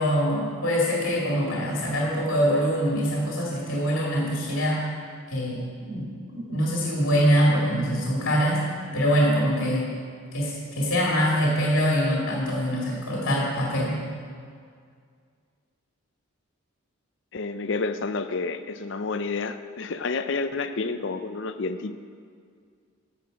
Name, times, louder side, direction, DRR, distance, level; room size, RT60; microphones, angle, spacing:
voice 1, 0.0-4.8 5.3-8.6 8.9-9.9 10.3-14.0, equal, 80° left, -3 dB, 2.1 m, -24 dB
voice 2, 17.3-21.9, left 4 dB, 60° left, 11 dB, 0.5 m, -29 dB
13.5 x 7.6 x 5.0 m, 2.1 s
head